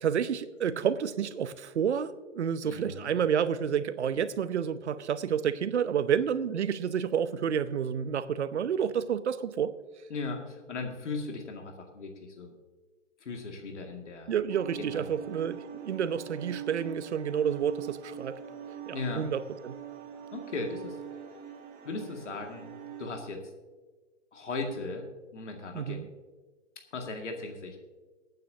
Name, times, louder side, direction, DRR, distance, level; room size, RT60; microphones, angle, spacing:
voice 1, 0.0-9.7 14.3-18.4 18.9-19.7 25.7-26.1, right 8 dB, 65° right, 14 dB, 0.9 m, -29 dB
voice 2, 2.6-3.2 10.1-12.5 13.2-14.3 14.8-15.0 18.9-19.3 20.3-21.0 21.8-22.7 23.0-23.4 24.3-25.1 25.3-26.0 26.9-27.8, left 3 dB, 70° left, 2 dB, 2.3 m, -37 dB
sound 1, 14.5-23.1, right 9 dB, 25° right, 1.6 m, -43 dB
24.0 x 9.2 x 2.8 m, 1.3 s
figure-of-eight pair, 120°, 37 cm